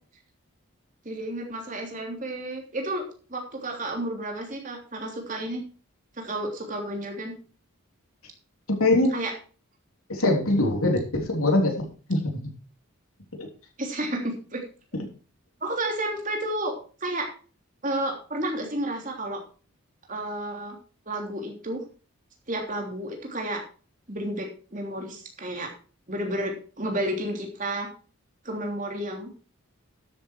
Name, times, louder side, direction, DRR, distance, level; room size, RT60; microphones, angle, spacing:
voice 1, 1.0-5.6 6.2-7.3 9.1-9.3 13.8-14.6 15.6-17.3 17.8-19.4 20.1-20.8 21.1-21.8 22.5-23.6 24.1-25.7 26.1-27.9 28.4-29.3, right 1 dB, 35° right, 1 dB, 3.3 m, -31 dB
voice 2, 8.7-9.1 10.1-12.4 13.4-13.5, left 2 dB, 85° left, 2 dB, 3.3 m, -23 dB
13.0 x 8.0 x 4.6 m, 0.37 s
head